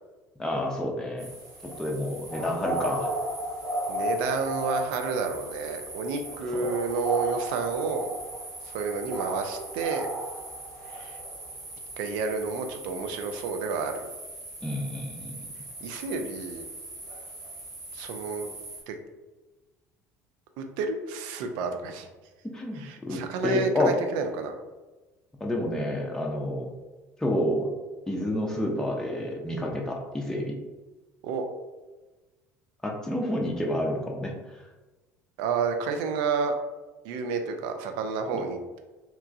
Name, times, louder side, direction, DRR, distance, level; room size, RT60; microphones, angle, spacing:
voice 1, 0.4-1.3 1.6-3.1 14.6-15.4 22.5-23.9 25.4-26.7 27.2-27.7 28.1-30.6 32.8-34.6, left 1 dB, 5° left, -1 dB, 0.5 m, -29 dB
sound 1, 1.2-18.8, right 1 dB, 85° right, 1.0 m, -36 dB
voice 2, 3.9-8.1 8.6-10.1 10.9-11.2 12.0-14.1 15.8-16.7 17.9-18.5 18.9-19.0 20.6-22.1 22.8-24.6 31.2-31.5 35.4-36.5 37.0-38.8, right 5 dB, 60° right, 5 dB, 0.4 m, -30 dB
2.9 x 2.2 x 2.5 m, 1.2 s
figure-of-eight pair, 60°, 9 cm